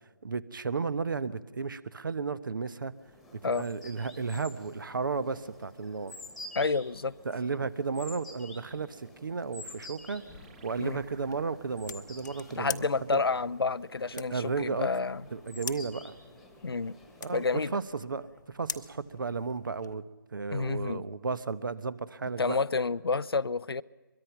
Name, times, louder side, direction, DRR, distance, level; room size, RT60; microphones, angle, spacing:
voice 1, 0.2-2.9 3.3-6.2 7.2-10.2 10.6-13.2 14.1-14.9 15.3-16.1 17.2-20.0 20.3-22.6, right 4 dB, 60° right, 15 dB, 1.1 m, -34 dB
sound 1, 3.0-17.9, left 2 dB, ahead, 1.6 m, -50 dB
voice 2, 6.5-7.1 10.8-11.0 12.6-15.2 16.6-16.9 17.3-17.7 20.5-21.0 22.4-23.8, left 4 dB, 80° left, 16 dB, 0.6 m, -29 dB
sound 2, 9.4-14.4, right 6 dB, 30° right, 2.0 m, -60 dB
sound 3, 9.6-20.0, left 5 dB, 50° left, 1.0 m, -46 dB
24.0 x 22.0 x 5.9 m, 1.3 s
figure-of-eight pair, 160°, 12 cm